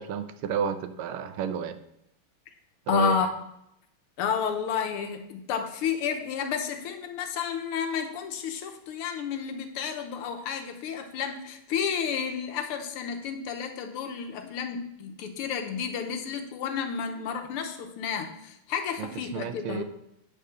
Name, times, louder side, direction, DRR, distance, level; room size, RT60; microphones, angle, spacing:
voice 1, 0.0-1.8 2.9-3.1 19.0-19.8, right 7 dB, 75° right, 10 dB, 1.5 m, -31 dB
voice 2, 2.9-3.3 4.2-19.8, left 7 dB, 85° left, 5 dB, 1.9 m, -31 dB
9.0 x 3.7 x 7.0 m, 0.79 s
omnidirectional pair, 2.4 m